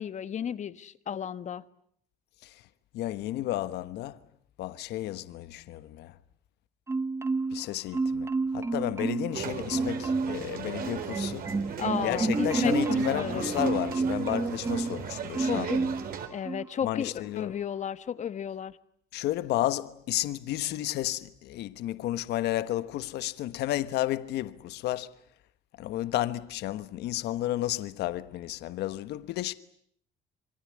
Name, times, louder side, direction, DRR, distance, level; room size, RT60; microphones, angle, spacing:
voice 1, 0.0-1.6 11.8-13.5 15.5-15.9 16.3-18.8, left 8 dB, 45° left, 1.4 m, -33 dB
voice 2, 2.9-4.2 4.6-6.2 7.5-11.5 12.0-15.7 16.8-17.6 19.1-25.2 25.8-29.5, left 14 dB, 80° left, 1.2 m, -32 dB
Marimba xylophone, 6.9-7.7 7.9-9.4 9.7-10.4 10.8-15.0 15.3-16.1 16.4-16.7, right 3 dB, 15° right, 1.1 m, -29 dB
sound 1, 9.3-16.3, right 7 dB, 60° right, 4.2 m, -36 dB
27.0 x 22.5 x 9.8 m
cardioid pair, 110°, 17 cm